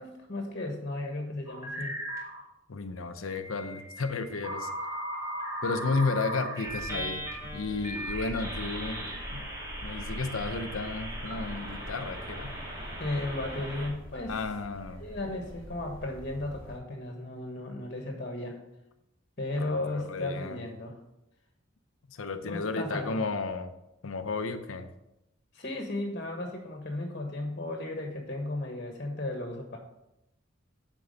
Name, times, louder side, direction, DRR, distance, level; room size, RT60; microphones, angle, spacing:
voice 1, 0.0-2.0 13.0-14.4 15.0-18.6 19.4-21.0 22.4-23.2 25.5-29.8, left 2 dB, 45° left, 2 dB, 1.4 m, -35 dB
sound 1, 1.5-2.4 3.3-13.9, right 1 dB, 15° right, 2.3 m, -38 dB
voice 2, 2.7-4.7 5.6-9.0 9.3-9.5 9.8-12.6 14.3-15.0 19.6-20.6 22.1-23.7 24.0-24.9, left 3 dB, 80° left, 8 dB, 0.7 m, -33 dB
sound 2, 6.6-16.8, equal, 5° left, 3.1 m, -44 dB
9.5 x 4.6 x 6.5 m, 0.88 s
head